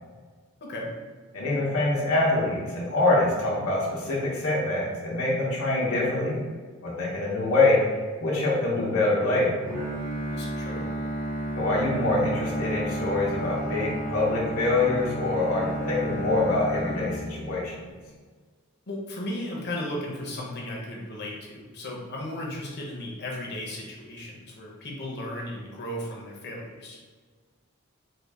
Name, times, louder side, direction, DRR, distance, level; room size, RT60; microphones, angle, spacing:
voice 1, 0.6-0.9 10.3-10.9 18.9-27.0, left 1 dB, 50° left, -2 dB, 0.8 m, -35 dB
voice 2, 1.3-6.4 6.8-7.8 8.2-9.6 11.5-17.8, left 2 dB, 80° left, -5 dB, 0.9 m, -25 dB
Bowed string instrument, 9.6-17.8, right 1 dB, 40° right, 1.1 m, -32 dB
3.7 x 2.3 x 3.4 m, 1.5 s
head